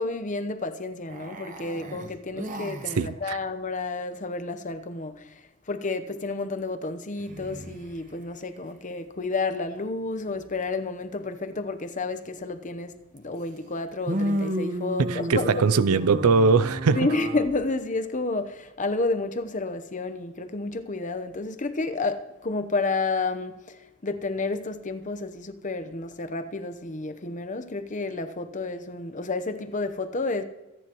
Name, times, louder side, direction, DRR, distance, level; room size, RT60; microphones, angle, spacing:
voice 1, 0.0-5.4 5.7-15.8 16.9-23.8 24.0-30.4, left 3 dB, 35° left, 0.9 m, -30 dB
sound 1, 1.1-3.1 7.2-8.1 13.2-13.3 14.1-17.5, right 1 dB, 35° right, 1.0 m, -33 dB
voice 2, 3.0-3.4 15.0-17.1, right 4 dB, 85° right, 0.5 m, -21 dB
25.5 x 9.8 x 3.1 m
head